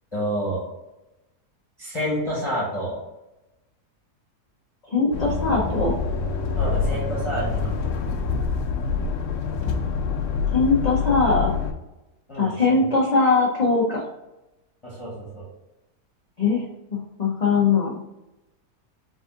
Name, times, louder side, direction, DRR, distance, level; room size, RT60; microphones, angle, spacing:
voice 1, 0.1-0.6 1.8-3.0 6.6-7.7 12.3-12.8 14.8-15.5, equal, 20° left, -7 dB, 1.2 m, -29 dB
voice 2, 4.8-5.9 10.5-11.5 12.4-14.0 16.4-16.6 16.9-18.0, left 4 dB, 40° left, -4 dB, 0.5 m, -21 dB
sound 1, 5.1-11.7, left 5 dB, 90° left, 1.2 m, -26 dB
3.9 x 3.5 x 3.7 m, 0.97 s
omnidirectional pair, 1.7 m